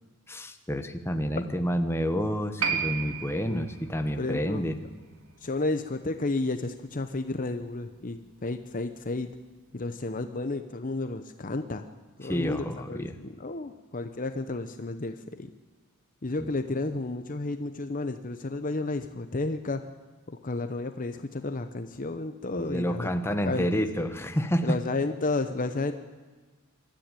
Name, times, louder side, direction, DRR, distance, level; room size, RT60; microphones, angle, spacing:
voice 1, 0.3-4.8 12.2-13.1 16.4-16.5 22.6-24.8, equal, 10° left, 7 dB, 1.2 m, -29 dB
Piano, 2.6-9.6 9.8-9.9, right 6 dB, 70° right, 2.6 m, -37 dB
voice 2, 4.2-4.6 5.4-9.3 9.7-11.9 12.2-15.5 16.2-19.9 20.3-24.1 24.6-25.9, left 2 dB, 35° left, 9 dB, 0.8 m, -32 dB
24.5 x 13.5 x 9.1 m, 1.3 s
head